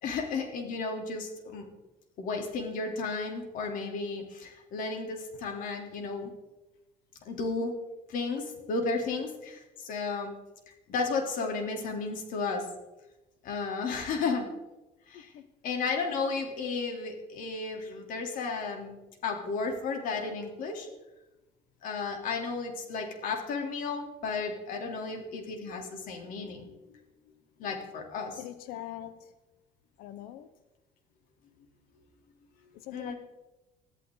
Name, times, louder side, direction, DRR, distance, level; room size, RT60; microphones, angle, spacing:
voice 1, 0.0-1.6 2.2-6.3 7.3-7.8 8.1-10.3 10.9-12.7 13.4-14.5 15.1-15.3 15.6-20.9 21.8-26.8 27.6-28.4 32.9-33.1, left 4 dB, 70° left, 3.6 m, -33 dB
voice 2, 15.1-15.5 28.4-29.3 30.0-30.5 32.7-33.1, left 13 dB, 90° left, 0.9 m, -42 dB
21.5 x 13.5 x 4.0 m
cardioid pair, 130°, 15 cm